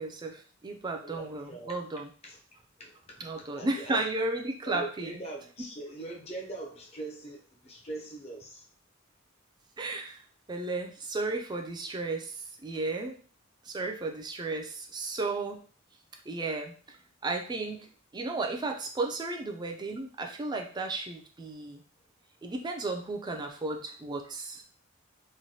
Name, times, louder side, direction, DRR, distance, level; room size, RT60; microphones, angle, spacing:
voice 1, 0.0-2.1 3.2-5.1 9.8-10.2 10.5-13.2 13.6-15.6 16.3-17.0 17.2-17.9 18.1-21.8 22.4-24.6, right 3 dB, 20° right, 3 dB, 0.4 m, -34 dB
voice 2, 1.0-1.8 2.2-2.4 2.8-4.0 4.7-8.7, right 2 dB, 30° left, 0 dB, 0.6 m, -42 dB
3.1 x 2.2 x 2.7 m, 0.42 s
head